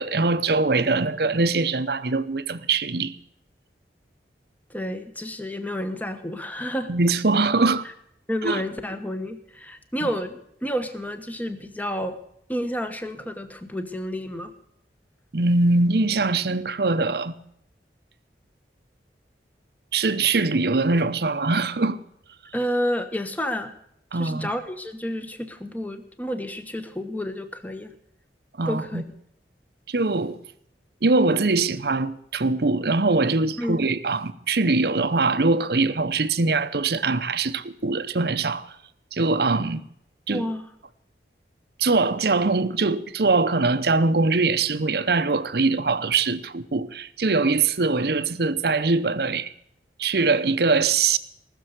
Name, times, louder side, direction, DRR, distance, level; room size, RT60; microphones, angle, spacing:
voice 1, 0.0-3.1 6.9-7.9 8.4-8.6 10.0-10.1 15.3-17.3 19.9-22.0 24.1-24.5 28.6-29.0 29.9-30.4 31.0-38.8 39.1-39.8 40.3-40.5 41.8-49.5 50.0-51.2, right 3 dB, 60° right, 0.8 m, -22 dB
voice 2, 4.7-6.9 8.3-12.2 12.5-14.5 22.5-23.7 24.1-27.9 28.7-29.0 33.6-33.8 40.3-40.7, equal, 10° left, 1.1 m, -30 dB
19.0 x 7.0 x 8.0 m
head